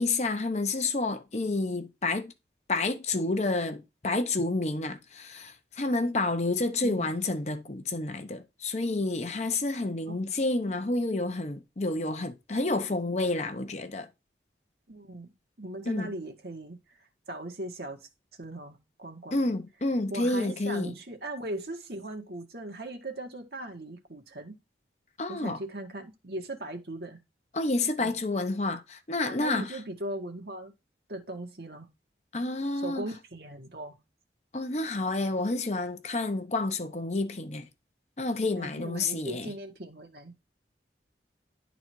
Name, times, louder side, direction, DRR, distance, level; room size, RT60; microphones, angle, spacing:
voice 1, 0.0-2.3 2.7-14.1 15.9-16.1 19.3-20.9 25.2-25.6 27.5-29.7 32.3-33.1 34.5-37.7 38.2-39.5, left 2 dB, 40° left, 0.8 m, -29 dB
voice 2, 14.9-18.1 18.4-19.4 20.1-24.5 25.3-27.2 28.0-28.2 29.2-30.7 31.1-31.9 32.8-34.0 38.6-40.4, right 1 dB, 60° right, 1.7 m, -39 dB
10.5 x 4.0 x 4.5 m
head